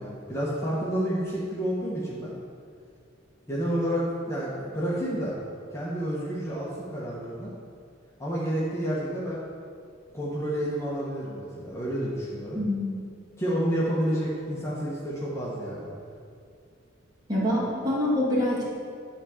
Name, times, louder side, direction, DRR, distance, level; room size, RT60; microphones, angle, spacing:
voice 1, 0.0-2.3 3.5-5.4 5.7-7.5 8.2-9.4 10.1-12.6 13.4-15.9, equal, 15° left, -7 dB, 1.3 m, -29 dB
voice 2, 12.6-13.1 17.3-18.6, left 1 dB, 20° right, -7 dB, 2.4 m, -25 dB
10.5 x 3.7 x 7.1 m, 2.3 s
head